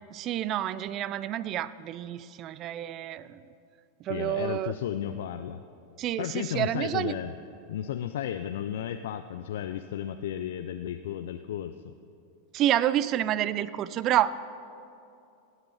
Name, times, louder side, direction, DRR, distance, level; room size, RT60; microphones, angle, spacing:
voice 1, 0.1-3.4 4.0-4.7 6.0-7.1 12.5-14.4, right 12 dB, 35° right, 17 dB, 0.4 m, -28 dB
voice 2, 4.1-5.6 6.2-7.3 7.7-11.9, left 10 dB, 75° left, 9 dB, 0.4 m, -33 dB
16.0 x 8.1 x 5.6 m, 2.6 s
supercardioid pair, 135°, 0 cm